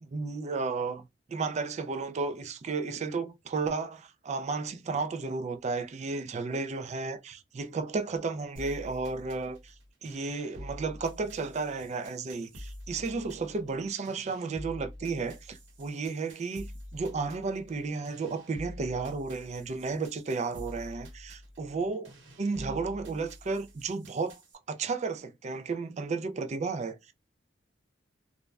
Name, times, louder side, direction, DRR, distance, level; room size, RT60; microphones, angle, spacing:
voice 1, 0.0-9.7 10.0-22.1 22.4-24.4 24.7-27.0, right 4 dB, 35° right, 0.4 m, -33 dB
sound 1, 8.5-24.5, left 1 dB, 90° right, 1.1 m, -47 dB
2.5 x 2.1 x 3.2 m
head